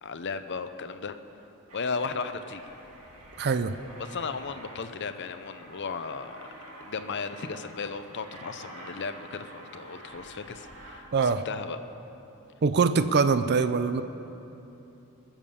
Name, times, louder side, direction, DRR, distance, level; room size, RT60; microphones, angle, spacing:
voice 1, 0.0-1.2 1.7-2.7 4.0-6.4 6.8-11.8, left 4 dB, 50° left, 9 dB, 0.7 m, -35 dB
Aircraft, 1.7-11.0, right 1 dB, 75° right, 2.4 m, -48 dB
voice 2, 3.4-3.7 11.1-11.4 12.6-14.0, right 5 dB, 50° right, 11 dB, 0.5 m, -23 dB
20.5 x 7.5 x 6.9 m, 3.0 s
head